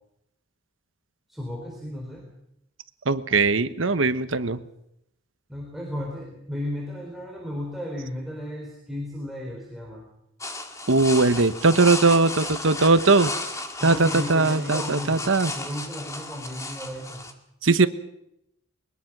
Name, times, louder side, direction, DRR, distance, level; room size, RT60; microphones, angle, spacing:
voice 1, 1.3-2.3 5.5-10.0 13.8-17.3, left 1 dB, ahead, -3 dB, 4.1 m, -34 dB
voice 2, 3.0-4.6 10.9-13.3 13.8-15.5 17.6-17.9, right 3 dB, 85° right, 11 dB, 1.2 m, -20 dB
sound 1, 10.4-17.3, left 2 dB, 15° left, 2.1 m, -34 dB
22.0 x 21.0 x 6.1 m, 0.82 s
head